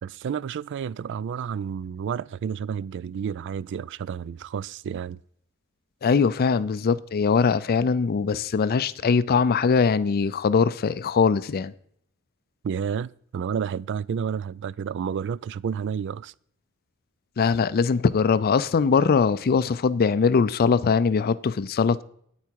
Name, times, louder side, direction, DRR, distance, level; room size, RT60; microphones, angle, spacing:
voice 1, 0.0-5.2 12.6-16.3, right 7 dB, 55° right, 0.3 m, -30 dB
voice 2, 6.0-11.7 17.4-22.0, left 5 dB, 45° left, 0.4 m, -21 dB
9.4 x 8.4 x 4.6 m
head